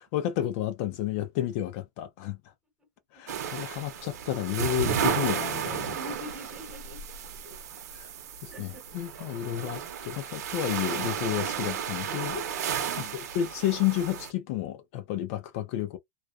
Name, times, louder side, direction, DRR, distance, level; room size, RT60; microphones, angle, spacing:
voice 1, 0.1-2.4 3.1-6.0 7.9-8.1 8.4-12.4 13.0-16.0, left 12 dB, 45° left, 0.5 m, -31 dB
sound 1, 3.3-14.3, right 8 dB, 65° right, 0.8 m, -33 dB
voice 2, 5.9-7.0 7.4-7.6 8.5-8.8 12.9-13.2, equal, 10° right, 1.1 m, -44 dB
2.4 x 2.2 x 2.3 m
hypercardioid pair, 140°, 9 cm